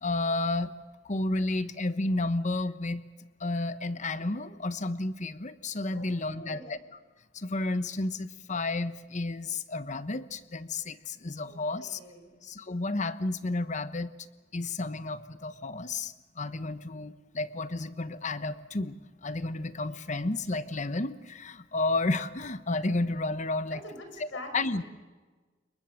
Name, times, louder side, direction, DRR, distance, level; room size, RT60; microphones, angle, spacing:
voice 1, 0.0-0.7 1.0-3.1 3.4-6.8 7.3-12.0 12.4-14.1 14.5-23.8 24.2-24.3 24.5-24.8, left 2 dB, 40° left, 13 dB, 1.1 m, -31 dB
voice 2, 5.9-6.8 11.4-12.4 23.7-24.9, left 1 dB, 90° left, 4 dB, 5.8 m, -46 dB
28.0 x 23.0 x 6.5 m, 1.3 s
head